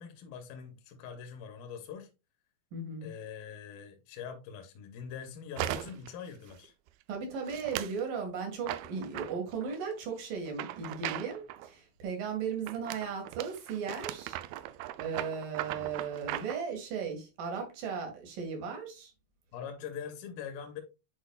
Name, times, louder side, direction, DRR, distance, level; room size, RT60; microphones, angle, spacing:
voice 1, 0.0-2.1 3.0-6.7 15.7-15.9 19.5-20.8, left 7 dB, 70° left, 2.6 m, -43 dB
voice 2, 2.7-3.1 7.1-14.4 15.0-19.1, right 6 dB, 60° right, 3.4 m, -36 dB
sound 1, 5.6-6.1 6.5-6.9 7.5-8.0 8.6-9.8 10.5-11.7 12.7-16.6, right 14 dB, 80° right, 2.3 m, -38 dB
10.5 x 4.8 x 2.4 m
omnidirectional pair, 4.6 m